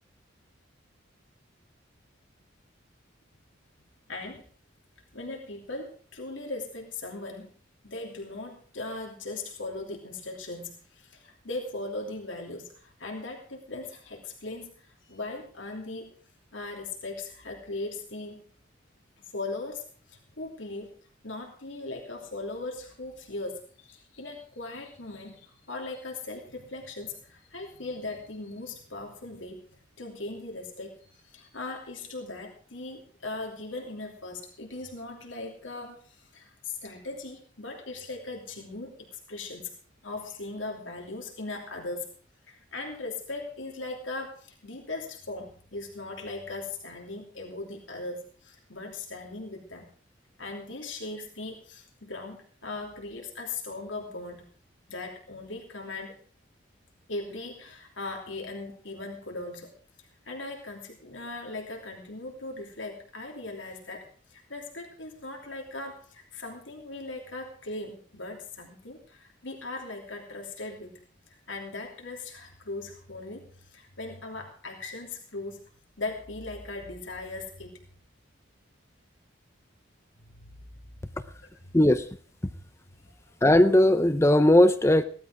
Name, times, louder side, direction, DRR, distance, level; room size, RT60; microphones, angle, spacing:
voice 1, 4.1-4.4 5.1-7.5 7.8-16.1 16.5-18.4 19.3-20.9 21.2-29.6 30.0-39.7 40.0-42.1 42.5-49.9 50.4-54.5 54.9-56.1 57.1-59.7 60.0-70.9 71.3-75.6 76.0-77.8 80.2-80.6, left 2 dB, 75° left, 2 dB, 3.0 m, -39 dB
voice 2, 81.7-82.1 83.4-85.0, left 1 dB, 15° left, 11 dB, 0.6 m, -18 dB
16.5 x 12.5 x 4.9 m, 0.43 s
head